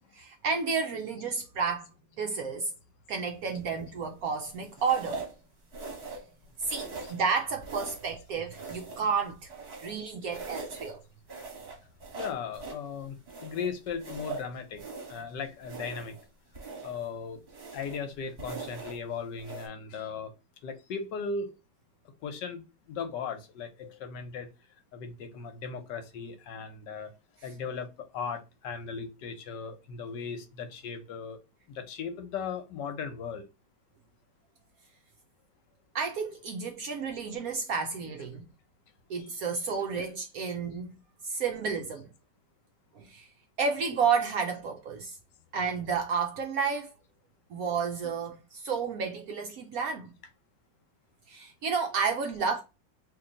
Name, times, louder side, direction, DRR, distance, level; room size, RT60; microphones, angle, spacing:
voice 1, 0.1-1.9 2.2-2.7 3.1-5.3 6.1-6.2 6.6-9.5 9.8-11.0 35.9-38.4 39.1-40.9 41.2-42.1 43.0-43.3 43.6-45.2 45.5-46.9 47.5-50.1 51.3-52.6, right 5 dB, 70° right, 0.9 m, -31 dB
sound 1, 3.5-3.9 4.8-5.4 5.7-6.3 6.6-7.3 7.6-8.2 8.5-10.0 10.3-10.9 11.3-12.9 13.3-15.3 15.6-16.2 16.5-17.1 17.5-18.0 18.4-19.0 19.4-19.7, right 3 dB, 40° right, 1.3 m, -41 dB
voice 2, 12.1-13.2 13.4-14.8 15.1-16.1 16.8-17.4 17.7-20.3 20.6-21.5 22.2-22.6 22.9-24.5 24.9-27.1 27.4-27.9 28.1-31.4 31.7-33.4 39.9-40.1, left 5 dB, 75° left, 1.3 m, -37 dB
3.0 x 2.9 x 3.8 m
omnidirectional pair, 2.0 m